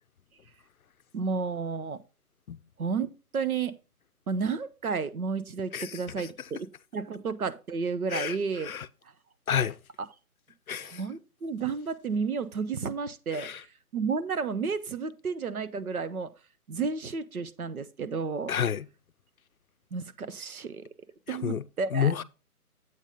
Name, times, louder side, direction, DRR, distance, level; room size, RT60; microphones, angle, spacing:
voice 1, 1.1-2.0 2.8-3.7 4.3-8.7 10.8-13.6 13.9-16.3 16.7-18.5 19.9-20.9 21.3-22.1, right 5 dB, 70° right, 0.8 m, -32 dB
voice 2, 10.7-11.0 13.3-13.6 18.5-18.9 21.3-21.6 21.9-22.2, left 8 dB, 65° left, 0.5 m, -29 dB
8.0 x 5.3 x 3.6 m
hypercardioid pair, 175°, 46 cm